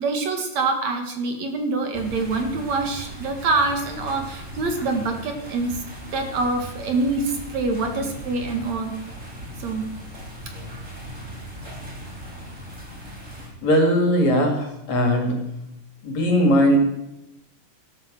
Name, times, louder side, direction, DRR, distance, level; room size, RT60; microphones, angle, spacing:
voice 1, 0.0-5.8 6.1-8.9 9.6-9.8, right 3 dB, 55° right, 5 dB, 2.7 m, -25 dB
sound 1, 1.9-13.5, right 1 dB, 20° right, 3.9 m, -38 dB
voice 2, 13.6-15.4 16.0-16.8, equal, 55° left, 4 dB, 3.5 m, -19 dB
14.5 x 12.5 x 7.6 m, 0.89 s
omnidirectional pair, 3.9 m